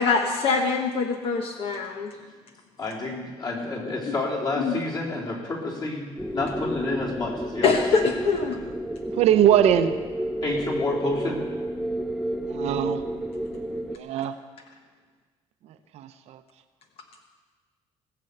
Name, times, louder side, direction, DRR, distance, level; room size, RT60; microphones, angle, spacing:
voice 1, 0.0-2.2 4.0-4.1 4.6-4.8 7.6-8.7, left 4 dB, 55° left, 3 dB, 1.2 m, -24 dB
voice 2, 2.8-6.1 6.3-7.8 10.4-11.5, left 2 dB, 40° left, -3 dB, 3.7 m, -29 dB
sound 1, 6.2-14.0, right 1 dB, ahead, 0.5 m, -31 dB
voice 3, 9.2-10.0 12.5-13.0 13.9-14.3 15.9-16.4, right 10 dB, 70° right, 9 dB, 0.8 m, -21 dB
18.5 x 7.0 x 8.0 m, 1.4 s
cardioid pair, 140°, 11 cm